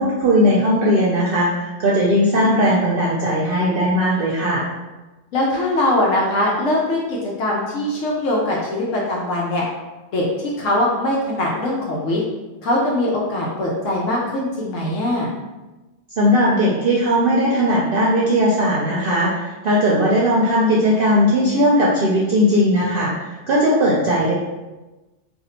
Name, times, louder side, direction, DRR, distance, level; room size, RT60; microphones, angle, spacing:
voice 1, 0.0-4.6 16.2-24.3, equal, 60° right, -5 dB, 0.7 m, -18 dB
voice 2, 5.3-9.6 10.1-10.2 10.6-12.2 12.6-15.3, left 1 dB, 80° left, -3 dB, 1.0 m, -21 dB
2.6 x 2.4 x 4.1 m, 1.1 s
omnidirectional pair, 1.3 m